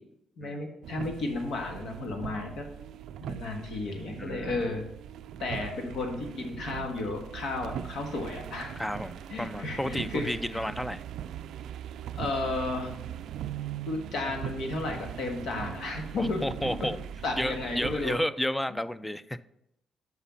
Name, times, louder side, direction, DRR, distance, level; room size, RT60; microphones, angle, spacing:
voice 1, 0.4-2.6 3.2-4.8 5.4-8.7 9.3-10.6 12.2-12.9 13.9-16.9 17.2-18.2, left 2 dB, 75° left, 3 dB, 1.5 m, -33 dB
sound 1, 0.8-18.2, right 9 dB, 80° right, 0.3 m, -40 dB
voice 2, 4.2-4.8 8.8-11.0 16.2-17.0 17.4-19.4, left 1 dB, 5° left, 15 dB, 0.3 m, -32 dB
5.9 x 5.7 x 5.6 m, 0.83 s
cardioid pair, 90°, 0 cm